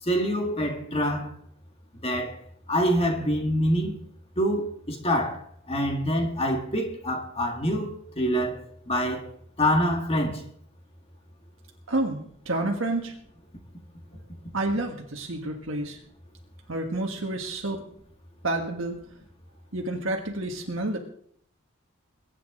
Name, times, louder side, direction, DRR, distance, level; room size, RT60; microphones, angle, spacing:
voice 1, 0.0-1.3 2.0-2.4 2.7-4.0 4.4-9.3 9.6-10.4, equal, 25° left, 1.8 m, -26 dB
voice 2, 11.9-13.1 14.5-16.0 16.7-17.8 18.4-19.0 19.7-21.0, right 2 dB, 60° right, 1.6 m, -29 dB
22.5 x 9.9 x 3.8 m
head